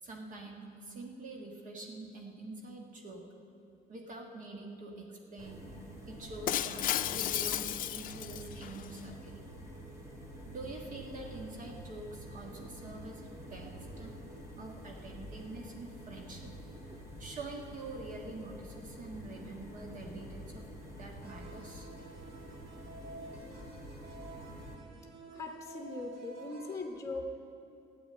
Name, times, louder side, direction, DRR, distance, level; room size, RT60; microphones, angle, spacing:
voice 1, 0.0-3.2 3.9-5.6 6.1-9.4 10.5-14.2 14.6-16.5 17.2-20.7 21.0-21.9, right 2 dB, 50° right, 1 dB, 1.6 m, -45 dB
sound 1, 5.4-24.8, right 1 dB, 20° right, 3.0 m, -48 dB
Shatter, 6.5-8.9, left 12 dB, 55° left, 0.5 m, -34 dB
sound 2, 21.2-26.9, right 3 dB, 65° right, 2.3 m, -51 dB
voice 2, 25.3-27.5, left 2 dB, 15° left, 3 dB, 1.2 m, -40 dB
12.5 x 9.4 x 8.7 m, 2.7 s
cardioid pair, 110°, 17 cm